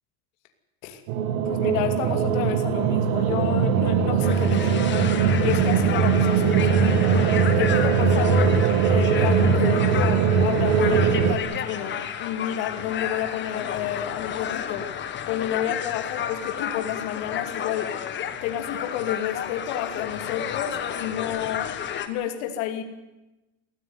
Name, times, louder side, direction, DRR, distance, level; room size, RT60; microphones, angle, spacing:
sound 1, 1.1-11.4, right 6 dB, 90° right, 2.4 m, -21 dB
voice 1, 1.4-5.1 5.4-18.0 18.4-21.7 22.1-22.8, left 11 dB, 75° left, 6 dB, 2.8 m, -30 dB
sound 2, 4.2-22.1, left 9 dB, 30° left, 1.5 m, -32 dB
22.0 x 15.0 x 9.6 m, 1.1 s
cardioid pair, 175°, 39 cm